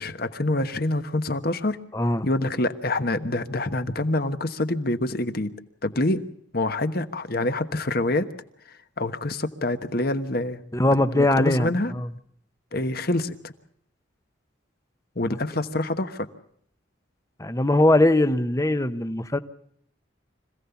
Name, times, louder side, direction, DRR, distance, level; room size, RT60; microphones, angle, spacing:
voice 1, 0.0-1.8 2.2-5.5 5.8-6.3 6.5-8.3 8.7-11.9 12.7-13.5 15.1-16.3, left 2 dB, 50° left, 9 dB, 1.2 m, -26 dB
voice 2, 1.9-2.2 10.7-12.1 17.4-19.4, left 1 dB, 15° left, 11 dB, 0.9 m, -21 dB
25.5 x 16.5 x 7.0 m, 0.69 s
head